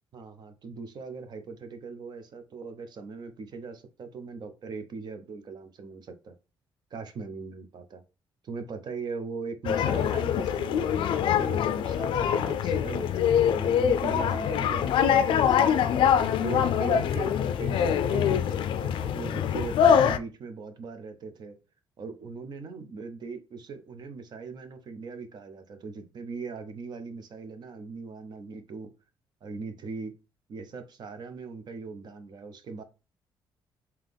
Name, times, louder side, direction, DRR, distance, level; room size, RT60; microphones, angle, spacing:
voice 1, 0.1-6.3 6.9-8.0 8.4-15.9 16.4-21.6 22.0-28.9 29.4-30.1 30.5-32.8, right 4 dB, 55° right, 9 dB, 0.7 m, -39 dB
sound 1, 9.6-20.2, left 8 dB, 70° left, 0.4 m, -24 dB
3.8 x 2.9 x 3.4 m, 0.30 s
cardioid pair, 105°, 9 cm